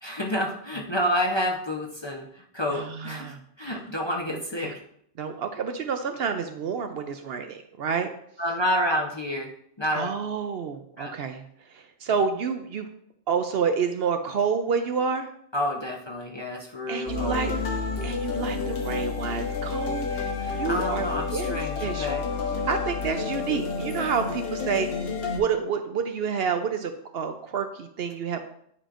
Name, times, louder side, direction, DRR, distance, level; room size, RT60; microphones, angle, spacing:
voice 1, 0.0-2.3 2.5-4.7 8.4-9.5 9.8-10.1 11.0-11.1 15.5-17.6 20.4-22.2, equal, 25° left, -1 dB, 0.7 m, -29 dB
voice 2, 2.7-3.4 4.3-4.8 5.2-8.1 9.9-11.4 11.7-12.9 13.3-15.3 16.9-17.5 18.0-22.2 22.7-24.9 25.3-28.4, right 6 dB, 65° right, 7 dB, 0.7 m, -29 dB
sound 1, 17.1-25.4, left 5 dB, 55° left, 1.1 m, -30 dB
9.7 x 5.0 x 2.5 m, 0.68 s
omnidirectional pair, 1.2 m